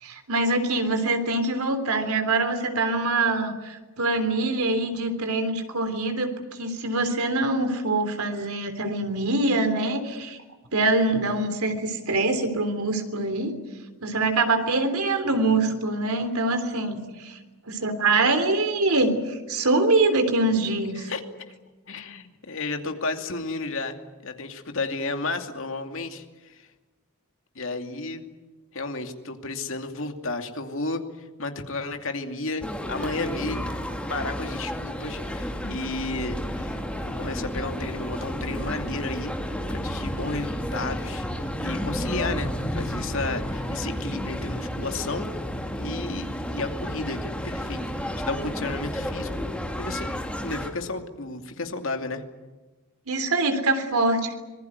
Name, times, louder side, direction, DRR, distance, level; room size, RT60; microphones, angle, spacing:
voice 1, 0.0-10.4 10.7-13.5 14.0-17.4 17.7-21.1 53.1-54.3, right 2 dB, 85° right, 8 dB, 3.4 m, -24 dB
voice 2, 21.9-24.0 24.2-26.7 27.5-28.2 28.7-33.8 34.1-36.8 37.2-39.3 39.7-45.3 45.8-49.4 49.8-50.1 50.4-52.2, left 3 dB, 60° left, 5 dB, 2.5 m, -32 dB
sound 1, 32.6-50.7, equal, 5° left, 2.5 m, -31 dB
25.5 x 21.0 x 9.4 m, 1.2 s
head